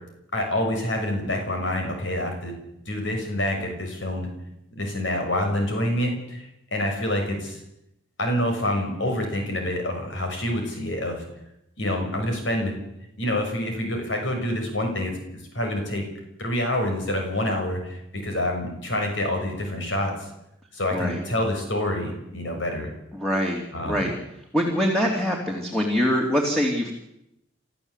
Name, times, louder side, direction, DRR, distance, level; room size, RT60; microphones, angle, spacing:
voice 1, 0.3-2.5 2.9-4.3 4.7-7.6 8.2-11.2 11.8-12.7 13.2-16.0 16.4-20.1 20.7-22.9 23.7-24.1, left 1 dB, 65° left, 3 dB, 6.4 m, -27 dB
voice 2, 20.9-21.2 23.1-24.1 24.5-27.0, equal, ahead, 0 dB, 3.1 m, -24 dB
27.5 x 14.5 x 8.4 m, 0.84 s
head